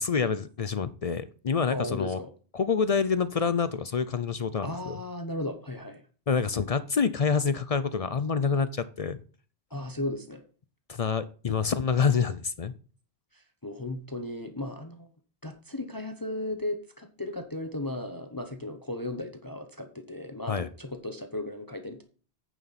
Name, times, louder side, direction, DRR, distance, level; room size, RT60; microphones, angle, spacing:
voice 1, 0.0-2.2 2.5-5.0 6.3-9.2 10.9-12.7 20.5-20.7, left 5 dB, 45° left, 14 dB, 0.5 m, -27 dB
voice 2, 1.7-2.3 4.6-6.0 9.7-10.4 13.3-15.1 15.4-22.0, left 1 dB, 20° left, 6 dB, 0.9 m, -36 dB
9.2 x 6.9 x 4.1 m, 0.38 s
omnidirectional pair, 1.1 m